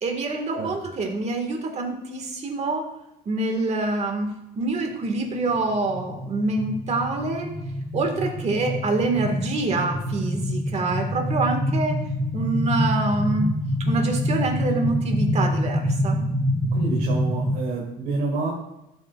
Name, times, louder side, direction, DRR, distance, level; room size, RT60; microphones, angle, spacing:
voice 1, 0.0-2.9 3.3-4.3 4.6-7.5 7.9-12.0 12.3-13.5 13.8-16.2, right 3 dB, 40° right, 4 dB, 1.8 m, -26 dB
sound 1, 5.3-17.6, left 1 dB, 20° right, 3.2 m, -26 dB
voice 2, 16.7-18.5, right 3 dB, 65° right, -2 dB, 2.1 m, -28 dB
12.5 x 7.6 x 2.4 m, 0.89 s
cardioid pair, 110°, 17 cm